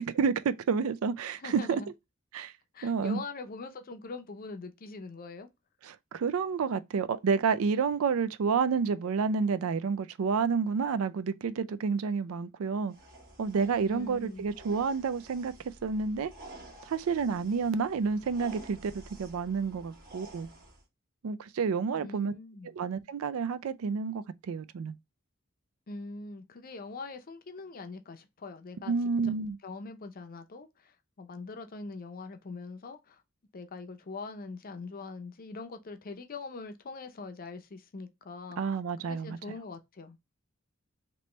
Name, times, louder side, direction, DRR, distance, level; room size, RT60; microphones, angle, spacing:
voice 1, 0.0-1.8 2.3-2.5 2.8-3.2 5.8-12.9 13.4-15.5 15.8-16.3 16.9-20.5 21.2-22.3 22.8-24.9 28.9-29.6 38.6-39.4, right 5 dB, 80° right, 0.4 m, -29 dB
voice 2, 1.3-1.9 2.7-5.5 13.8-14.4 21.9-22.7 25.9-28.9 29.6-33.2 33.5-38.6 39.0-40.2, left 3 dB, 45° left, 0.5 m, -42 dB
sound 1, 12.9-20.8, right 2 dB, 45° right, 1.3 m, -51 dB
3.0 x 3.0 x 3.2 m
head